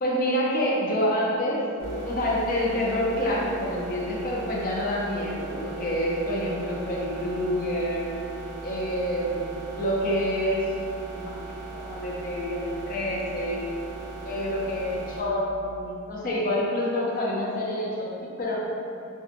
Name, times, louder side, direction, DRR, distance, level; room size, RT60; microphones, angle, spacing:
voice 1, 0.0-8.0 8.6-10.6 11.1-11.3 11.8-13.6 14.2-18.6, equal, 40° left, -4 dB, 0.5 m, -27 dB
sound 1, 1.8-15.2, right 3 dB, 5° left, 1.0 m, -38 dB
2.8 x 2.3 x 2.5 m, 2.6 s
head